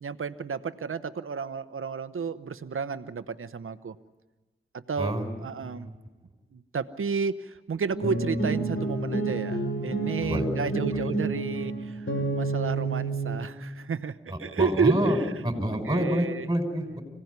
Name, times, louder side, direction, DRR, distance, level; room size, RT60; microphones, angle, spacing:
voice 1, 0.0-4.0 4.9-5.9 6.5-12.1 12.3-15.2 15.8-16.5, right 5 dB, 80° right, 11 dB, 0.9 m, -31 dB
voice 2, 5.0-5.3 5.6-6.0 10.2-10.5 10.9-11.0 14.3-15.2 15.4-17.0, equal, 15° right, 5 dB, 5.6 m, -28 dB
sound 1, 7.9-13.4, right 2 dB, 70° left, 4.3 m, -29 dB
26.0 x 17.5 x 9.6 m, 1.1 s
cardioid pair, 55°, 21 cm